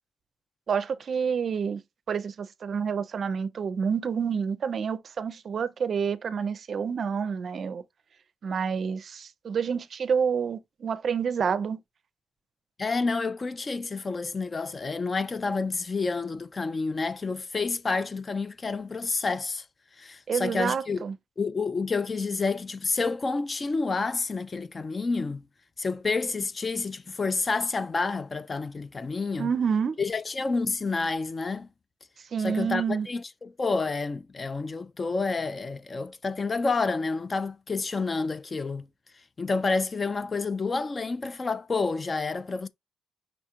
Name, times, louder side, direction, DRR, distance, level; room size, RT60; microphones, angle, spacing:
voice 1, 0.7-1.8 2.1-7.8 8.4-11.8 20.3-21.1 29.4-30.0 32.3-33.1, right 6 dB, 45° right, 0.5 m, -28 dB
voice 2, 12.8-19.7 20.0-21.0 21.4-25.4 25.8-29.5 30.0-31.7 32.4-38.9 39.4-42.7, left 4 dB, 25° left, 0.3 m, -29 dB
5.2 x 2.4 x 4.3 m
cardioid pair, 130°, 0 cm